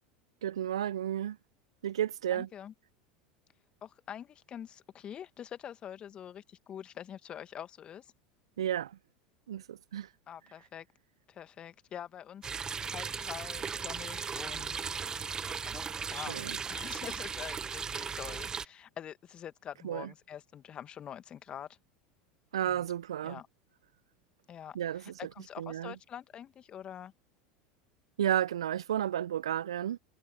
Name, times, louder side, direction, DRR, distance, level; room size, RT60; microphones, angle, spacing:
voice 1, 0.4-1.4 1.8-2.5 8.6-9.0 9.5-10.1 16.1-16.6 19.8-20.1 22.5-23.4 24.7-25.1 25.6-25.9 28.2-30.0, right 10 dB, 75° right, 0.4 m, -32 dB
voice 2, 2.3-2.7 3.8-8.1 10.3-10.9 11.3-15.0 15.7-16.4 16.7-21.7 22.6-22.9 23.2-23.5 24.5-27.1, left 9 dB, 35° left, 1.8 m, -45 dB
sound 1, 12.4-18.7, right 6 dB, 25° right, 1.1 m, -37 dB
figure-of-eight pair, 80°, 3 cm